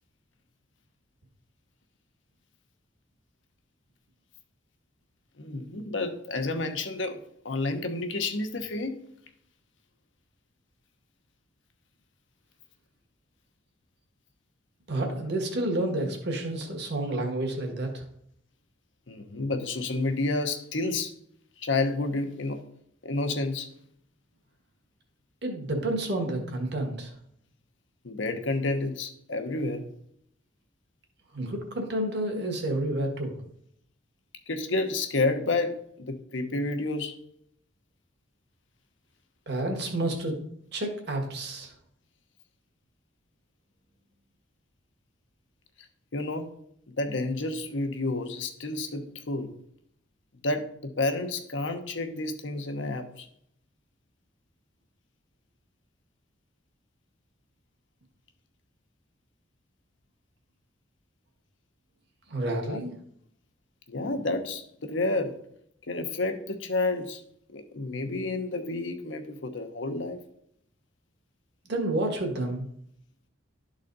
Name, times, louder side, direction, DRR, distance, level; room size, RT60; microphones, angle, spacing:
voice 1, 5.4-9.0 19.1-21.1 21.6-22.6 23.0-23.7 28.0-29.9 34.5-37.2 46.1-46.5 47.0-49.6 50.4-53.3 62.7-62.8 63.9-65.4 65.9-67.2 67.5-70.2, left 2 dB, 75° left, 7 dB, 0.9 m, -30 dB
voice 2, 14.9-18.0 25.4-27.1 31.3-33.4 39.5-40.4 40.7-41.7 62.3-62.9 71.7-72.7, right 1 dB, 60° right, 2 dB, 1.6 m, -30 dB
11.5 x 4.0 x 4.0 m, 0.70 s
head